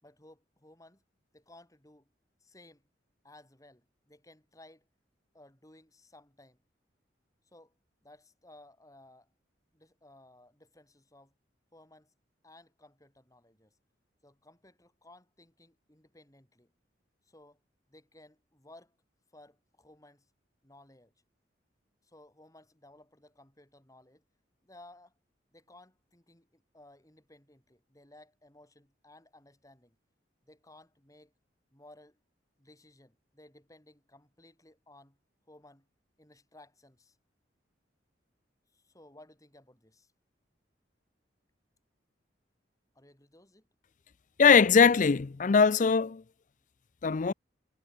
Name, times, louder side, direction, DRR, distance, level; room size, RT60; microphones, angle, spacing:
voice 1, 0.0-1.0 1.3-2.1 2.4-2.9 3.2-4.9 5.3-6.6 7.5-7.7 8.0-9.3 9.7-11.3 11.7-12.1 12.4-13.8 14.2-16.7 17.2-17.6 17.9-19.0 19.3-20.3 20.6-21.1 22.0-24.2 24.6-25.1 25.5-30.0 30.4-31.3 31.7-32.2 32.6-35.2 35.5-35.9 36.2-37.2 38.7-40.1 42.9-43.7, left 1 dB, 20° left, 3.9 m, -58 dB
voice 2, 44.4-46.2 47.0-47.3, left 5 dB, 45° left, 0.4 m, -21 dB
head